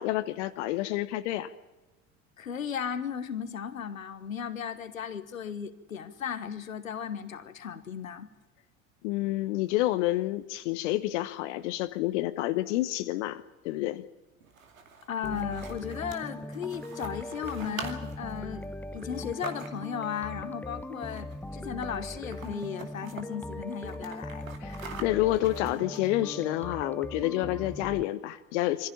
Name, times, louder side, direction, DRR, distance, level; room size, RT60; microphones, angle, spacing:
voice 1, 0.0-1.5 9.0-14.0 24.6-28.9, left 16 dB, 60° left, 11 dB, 1.1 m, -29 dB
voice 2, 2.4-8.3 15.1-18.6 18.9-24.5, left 7 dB, 80° left, 12 dB, 1.3 m, -36 dB
sound 1, 14.4-20.1 21.1-21.5 21.8-21.9 22.2-23.3 23.7-26.3, right 5 dB, 80° right, 2.5 m, -45 dB
sound 2, 15.2-28.0, left 1 dB, 5° left, 0.8 m, -40 dB
23.5 x 15.5 x 8.7 m, 1.1 s
figure-of-eight pair, 65°, 40 cm